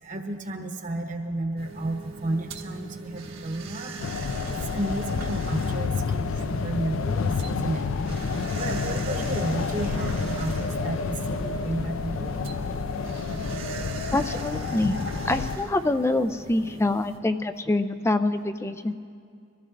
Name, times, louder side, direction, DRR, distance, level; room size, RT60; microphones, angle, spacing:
voice 1, 0.0-3.9 4.5-7.9 8.6-12.5, right 1 dB, 40° right, 4 dB, 1.0 m, -32 dB
sound 1, 1.6-17.2, right 3 dB, 75° right, 1.4 m, -41 dB
sound 2, 4.0-15.6, left 4 dB, 75° left, 0.4 m, -29 dB
voice 2, 14.1-15.0 15.3-18.9, left 2 dB, 15° left, 10 dB, 0.3 m, -25 dB
24.0 x 14.5 x 2.5 m, 2.4 s
head